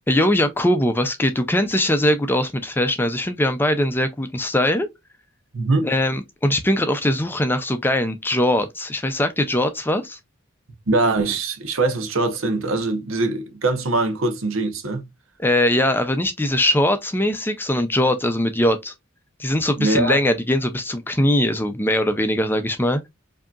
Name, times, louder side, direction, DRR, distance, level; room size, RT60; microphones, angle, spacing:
voice 1, 0.1-4.9 5.8-10.2 15.4-18.9 19.4-23.1, left 1 dB, 10° left, 0.5 m, -21 dB
voice 2, 5.5-5.9 10.9-15.0 19.8-20.2, right 2 dB, 70° right, 0.9 m, -22 dB
4.8 x 2.8 x 2.4 m
head